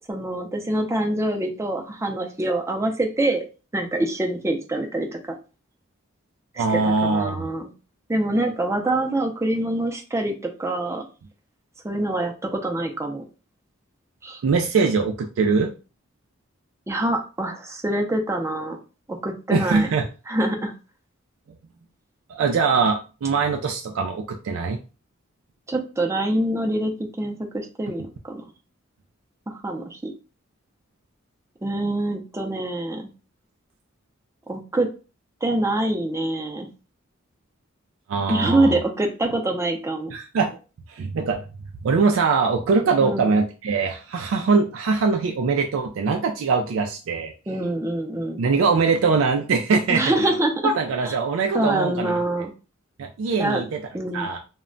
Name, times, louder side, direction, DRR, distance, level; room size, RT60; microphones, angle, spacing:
voice 1, 0.1-3.4 3.7-5.2 6.5-7.7 8.1-11.0 11.8-13.2 14.2-14.4 16.9-18.8 19.1-19.9 20.3-20.7 25.7-26.9 27.2-28.4 29.5-30.1 31.6-33.1 34.5-34.9 35.4-36.7 38.3-40.1 43.0-43.3 47.5-48.4 49.9-50.5 51.5-52.5 53.4-53.6 53.9-54.3, right 1 dB, 15° right, 3 dB, 0.4 m, -25 dB
voice 2, 6.6-7.5 14.4-15.7 19.5-20.1 22.3-24.8 38.1-38.8 40.1-40.6 40.9-41.5 41.8-47.3 48.4-50.4 50.6-52.2 53.0-53.8 54.1-54.4, right 4 dB, 80° right, 3 dB, 0.4 m, -22 dB
2.1 x 2.1 x 3.7 m, 0.33 s
head